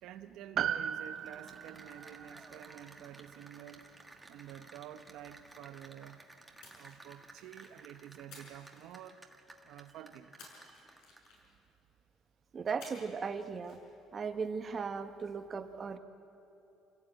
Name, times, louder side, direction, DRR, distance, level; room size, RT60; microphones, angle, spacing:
voice 1, 0.0-3.9 4.3-6.2 6.7-9.2 9.6-10.4, right 11 dB, 65° right, 9 dB, 0.9 m, -50 dB
Piano, 0.6-5.2 5.4-5.5, right 9 dB, 40° right, 0.6 m, -39 dB
Cheering / Applause, 1.1-11.4, right 2 dB, 5° right, 1.5 m, -56 dB
Splash splatter, 6.6-7.8 8.3-9.5 10.4-11.7 12.8-13.3 13.6-13.8, left 3 dB, 65° left, 6.5 m, -55 dB
voice 2, 12.5-13.8 14.1-16.0, right 5 dB, 25° right, 8 dB, 1.1 m, -37 dB
28.0 x 17.0 x 9.0 m, 2.9 s
cardioid pair, 170°, 0 cm